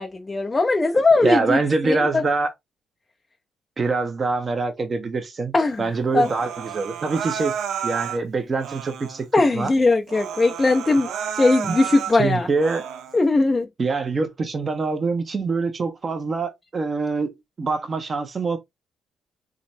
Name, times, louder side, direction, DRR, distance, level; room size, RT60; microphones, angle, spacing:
voice 1, 0.0-1.6 1.8-2.2 5.5-5.9 6.1-6.3 9.3-12.5 13.1-13.7, left 3 dB, 25° left, 0.6 m, -19 dB
voice 2, 1.2-2.5 3.8-5.5 5.8-7.6 7.8-9.3 9.5-9.7 11.7-11.8 12.2-12.8 13.8-18.6, right 4 dB, 35° right, 1.1 m, -24 dB
Human voice, 6.1-8.2 8.6-9.3 9.7-9.8 10.1-12.2 12.6-13.2, right 8 dB, 80° right, 0.6 m, -31 dB
3.9 x 3.2 x 2.7 m
cardioid pair, 90°, 0 cm